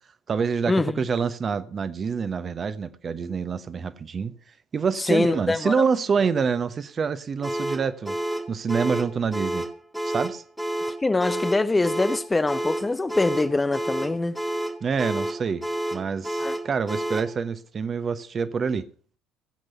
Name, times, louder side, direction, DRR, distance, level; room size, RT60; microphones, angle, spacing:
voice 1, 0.3-4.3 4.7-8.2 8.5-9.6 10.0-10.4 14.8-15.6 15.9-18.9, right 6 dB, 35° right, 1.0 m, -26 dB
voice 2, 5.0-5.8 11.0-14.4 16.4-16.6, left 2 dB, 15° left, 0.6 m, -23 dB
sound 1, 7.4-17.4, right 1 dB, 5° right, 1.5 m, -30 dB
16.5 x 8.1 x 5.5 m
figure-of-eight pair, 55°, 0 cm